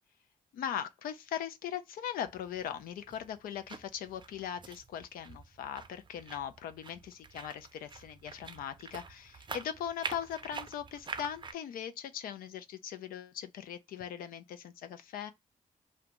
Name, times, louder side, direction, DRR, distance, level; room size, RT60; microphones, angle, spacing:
voice 1, 0.5-15.3, left 9 dB, 90° left, 0.4 m, -40 dB
sound 1, 2.3-11.5, right 5 dB, 35° right, 0.5 m, -46 dB
2.5 x 2.2 x 2.8 m
cardioid pair, 85°, 14 cm